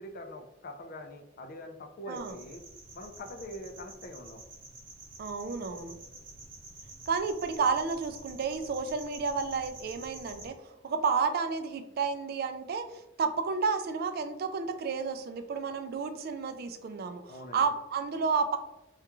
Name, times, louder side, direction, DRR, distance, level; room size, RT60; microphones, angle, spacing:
voice 1, 0.0-2.6 2.9-4.4 17.3-17.7, left 1 dB, 50° left, 5 dB, 0.4 m, -44 dB
sound 1, 2.1-10.5, right 2 dB, 75° right, 0.9 m, -49 dB
voice 2, 5.2-6.0 7.1-18.6, right 5 dB, 55° right, 8 dB, 0.3 m, -31 dB
3.4 x 2.3 x 2.9 m, 0.93 s
head